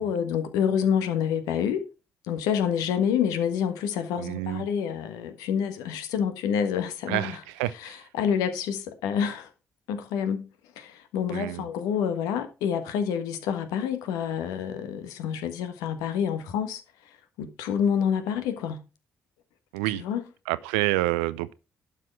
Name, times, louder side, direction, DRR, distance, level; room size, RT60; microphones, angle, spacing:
voice 1, 0.0-1.8 2.2-7.4 7.8-9.5 9.9-10.5 10.8-16.8 17.4-18.8 19.9-20.2, left 8 dB, 70° left, 1.3 m, -28 dB
voice 2, 4.2-4.7 7.1-8.0 11.3-11.7 19.7-20.0 20.5-21.5, right 18 dB, 75° right, 0.4 m, -28 dB
11.5 x 5.9 x 4.5 m
figure-of-eight pair, 40°, 6 cm